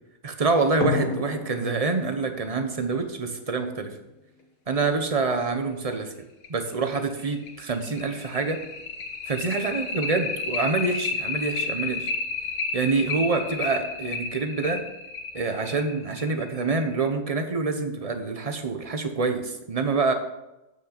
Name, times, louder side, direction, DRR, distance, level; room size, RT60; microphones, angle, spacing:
voice 1, 0.2-3.9 4.7-6.1 6.5-8.6 9.3-12.1 12.7-14.8 15.3-20.1, right 4 dB, 30° right, 7 dB, 0.9 m, -26 dB
sound 1, 0.8-4.0 5.4-5.5 5.9-6.0 6.4-6.5 7.0-17.0, left 4 dB, 80° left, 1.5 m, -32 dB
8.6 x 6.1 x 5.9 m, 0.97 s
omnidirectional pair, 1.4 m